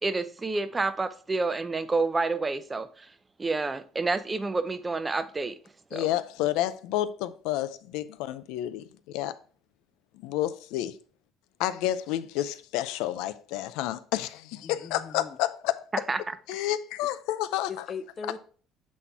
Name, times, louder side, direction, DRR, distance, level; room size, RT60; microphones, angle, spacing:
voice 1, 0.0-3.1 3.4-5.6 5.9-6.1 16.1-16.2, right 3 dB, 20° right, 0.5 m, -29 dB
voice 2, 5.9-9.4 10.1-11.0 11.6-15.9 16.5-17.8, left 13 dB, 90° left, 0.4 m, -30 dB
voice 3, 14.6-15.4 17.7-18.4, left 5 dB, 35° left, 0.7 m, -39 dB
7.2 x 4.2 x 3.4 m
cardioid pair, 130°, 0 cm